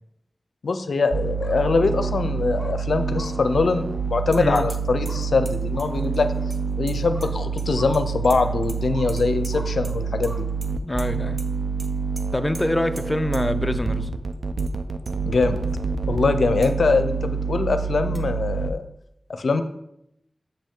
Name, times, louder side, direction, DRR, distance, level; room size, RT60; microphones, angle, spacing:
voice 1, 0.6-6.3 6.8-10.5 15.3-15.6 16.1-18.8 19.4-19.6, left 4 dB, 85° left, 9 dB, 0.5 m, -23 dB
sound 1, 1.1-18.7, right 5 dB, 70° right, 0.5 m, -27 dB
sound 2, 1.3-1.6 2.0-2.1 2.5-2.7 3.1-3.3 3.9-4.0 5.0-5.2 5.7-5.9 6.3-6.5 7.1-7.3 7.7-7.9 8.3-8.5 8.9-9.1 9.5-9.7 10.2-10.4 10.9-11.0, equal, 25° right, 2.8 m, -42 dB
sound 3, 4.3-4.8 5.1-7.7 7.9-8.8 9.1-9.9 10.2-10.7 11.0-11.1 11.4-11.5 11.8-11.9 12.2-12.3 12.5-12.6 13.0-13.1 13.3-13.4 14.3-14.7 15.1-15.2 15.7-15.8 16.6-16.7 18.1-18.2, right 2 dB, 40° right, 0.8 m, -42 dB
voice 2, 4.4-4.7 10.8-11.4 12.3-14.1, left 1 dB, 25° left, 9 dB, 0.4 m, -25 dB
7.4 x 5.3 x 3.7 m, 0.80 s
cardioid pair, 50°, 0 cm